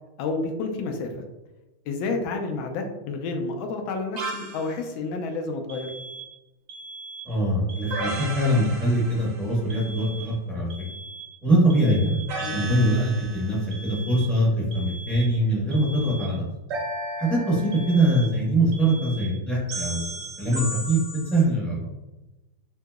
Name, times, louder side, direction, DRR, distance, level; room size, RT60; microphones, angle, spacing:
voice 1, 0.2-1.1 1.9-5.9 12.4-12.7, left 3 dB, 80° left, 4 dB, 1.3 m, -30 dB
sound 1, 4.2-4.7 7.9-9.6 12.3-13.7 16.7-18.2 19.7-21.4, right 2 dB, 90° right, 0.7 m, -34 dB
sound 2, 5.7-6.4 6.7-7.4 7.7-8.4 9.7-10.4 10.7-11.4 11.7-12.4 13.7-14.4 14.7-15.4 15.7-16.4 17.7-18.4 18.7-19.4 19.7-20.4, right 3 dB, 55° right, 1.2 m, -41 dB
voice 2, 7.3-10.7 11.4-12.2 12.5-16.4 17.2-20.1 20.4-21.0 21.3-21.9, right 1 dB, ahead, -8 dB, 0.5 m, -23 dB
3.8 x 2.7 x 2.3 m, 1.0 s
omnidirectional pair, 2.2 m